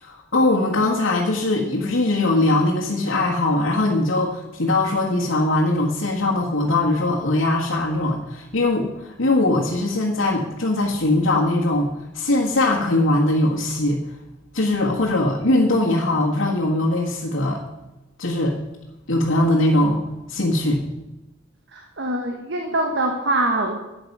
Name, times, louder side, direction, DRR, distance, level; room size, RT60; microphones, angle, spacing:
voice 1, 0.0-14.0 14.5-17.6 18.2-18.6 19.1-20.8, left 2 dB, 85° left, -5 dB, 1.7 m, -21 dB
voice 2, 21.7-23.8, right 2 dB, 60° right, 2 dB, 1.4 m, -23 dB
12.0 x 8.9 x 5.5 m, 1.0 s
head